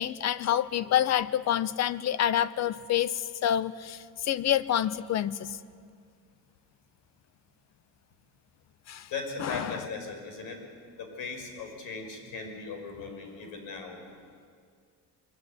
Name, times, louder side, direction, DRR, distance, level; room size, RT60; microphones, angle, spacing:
voice 1, 0.0-5.6 8.9-9.1 9.4-9.8, left 11 dB, 50° left, 16 dB, 0.8 m, -28 dB
voice 2, 9.1-10.6 11.0-14.0, left 4 dB, 80° left, 4 dB, 5.8 m, -38 dB
23.5 x 23.5 x 9.8 m, 2.2 s
cardioid pair, 170°, 34 cm